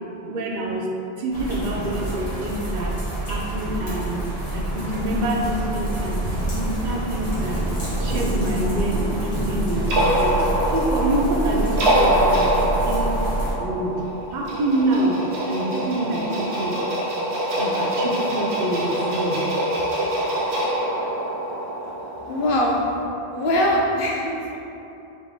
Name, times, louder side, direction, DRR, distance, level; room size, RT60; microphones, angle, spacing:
voice 1, 0.3-0.9 1.2-3.0 3.3-4.2 4.5-7.6 8.0-10.4 10.7-13.1 13.6-14.0 14.3-16.8 17.6-19.4, right 1 dB, 55° right, -1 dB, 0.6 m, -26 dB
sound 1, 1.3-13.5, right 1 dB, 35° left, 1.5 m, -27 dB
sound 2, 8.6-23.0, right 1 dB, 75° right, 1.1 m, -25 dB
voice 2, 22.2-22.9 23.3-24.6, left 1 dB, 65° left, -2 dB, 0.7 m, -22 dB
4.1 x 3.0 x 3.5 m, 2.9 s
omnidirectional pair, 1.1 m